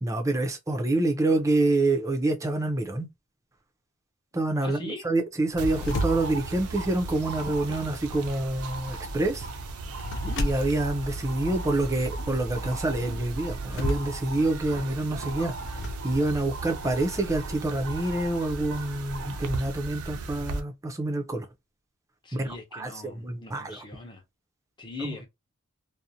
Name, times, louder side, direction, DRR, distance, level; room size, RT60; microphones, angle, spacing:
voice 1, 0.0-3.1 4.3-9.5 10.4-15.5 16.0-21.5 22.3-23.8 25.0-25.1, right 2 dB, 15° right, 0.5 m, -27 dB
voice 2, 4.6-5.1 10.1-10.4 22.2-24.2 24.8-25.3, left 3 dB, 20° left, 0.7 m, -41 dB
sound 1, 5.5-15.9, equal, 55° left, 0.4 m, -36 dB
sound 2, 5.6-20.6, right 3 dB, 80° right, 0.5 m, -36 dB
2.5 x 2.0 x 2.7 m
head